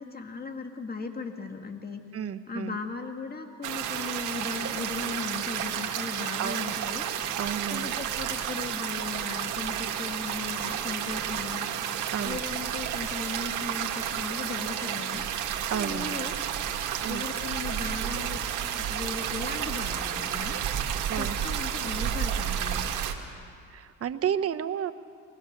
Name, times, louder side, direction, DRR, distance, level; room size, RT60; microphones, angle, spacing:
voice 1, 0.0-2.0 2.5-7.1 7.7-11.7 12.2-15.2 15.7-16.4 17.1-18.4 18.8-20.6 21.2-22.9, left 4 dB, 30° left, 5 dB, 2.0 m, -37 dB
voice 2, 2.1-2.8 6.4-6.6 7.4-8.0 12.1-12.4 15.7-16.2 17.0-17.3 21.1-21.4 23.7-24.9, right 9 dB, 50° right, 10 dB, 0.9 m, -31 dB
sound 1, 3.6-23.1, right 9 dB, 90° right, 1.7 m, -31 dB
22.5 x 20.0 x 6.6 m, 2.3 s
cardioid pair, 90°, 30 cm